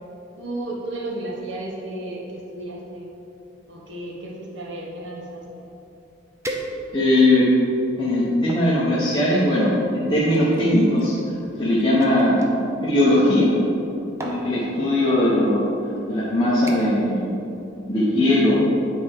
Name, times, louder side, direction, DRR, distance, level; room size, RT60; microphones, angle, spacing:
voice 1, 0.4-3.1 3.7-5.7, right 1 dB, 65° right, -2 dB, 1.3 m, -33 dB
sound 1, 6.4-7.2 7.8-8.7 9.6-12.5 13.6-13.9 14.2-14.5 15.4-15.5 16.0-16.2 16.7-17.1 17.4-17.7 18.1-18.2, right 1 dB, 15° right, 0.6 m, -37 dB
voice 2, 6.9-7.5 8.0-11.1 11.6-12.4 12.8-13.5 14.2-15.7 16.1-17.4 17.9-18.6, left 1 dB, 25° left, -9 dB, 1.2 m, -19 dB
9.3 x 4.4 x 4.9 m, 2.9 s
head